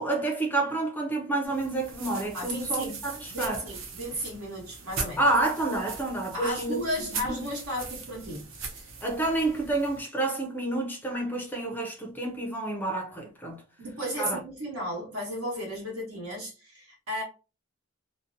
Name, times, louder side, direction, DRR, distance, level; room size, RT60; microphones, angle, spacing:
voice 1, 0.0-3.6 5.2-7.5 9.0-13.6 14.2-14.4, right 2 dB, 10° left, 0.4 m, -29 dB
sound 1, 1.4-10.0, right 4 dB, 60° right, 0.5 m, -40 dB
voice 2, 2.3-3.0 3.3-5.2 6.3-8.9 13.8-17.2, equal, 80° right, 1.2 m, -34 dB
2.5 x 2.0 x 2.5 m
head